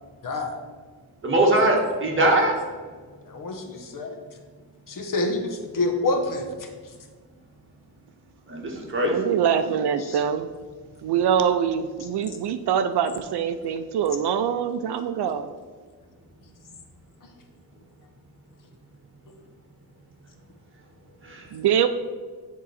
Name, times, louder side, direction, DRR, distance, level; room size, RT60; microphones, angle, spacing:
voice 1, 0.2-0.6 3.2-4.2 4.9-6.7 10.0-10.2, left 2 dB, 50° left, 4 dB, 1.0 m, -27 dB
voice 2, 1.2-2.5 8.5-9.1 21.2-21.5, right 1 dB, 30° right, -1 dB, 1.5 m, -21 dB
voice 3, 9.0-10.5 11.0-15.5 21.5-21.9, right 8 dB, 70° right, 11 dB, 0.5 m, -24 dB
10.0 x 3.8 x 4.2 m, 1.5 s
wide cardioid pair, 125°, 41 cm